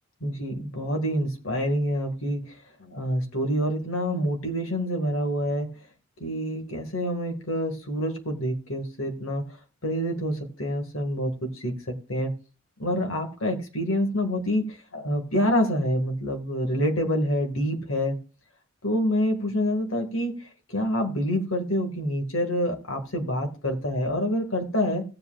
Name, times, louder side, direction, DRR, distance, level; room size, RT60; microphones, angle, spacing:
voice 1, 0.2-5.7 6.2-9.6 9.8-12.3 12.8-18.2 18.8-25.0, equal, 90° left, 2.2 m, -27 dB
17.0 x 7.8 x 2.5 m
head